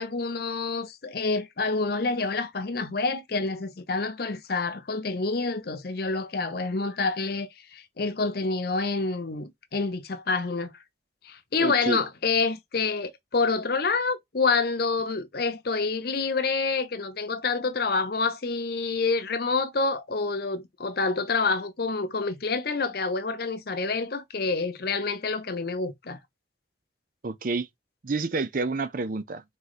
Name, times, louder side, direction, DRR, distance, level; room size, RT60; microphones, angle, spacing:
voice 1, 0.0-10.7 11.2-26.2, left 4 dB, 55° left, 0.6 m, -27 dB
voice 2, 11.6-12.0 27.2-27.7 28.0-29.4, right 3 dB, 45° right, 0.5 m, -29 dB
4.0 x 3.2 x 3.9 m
head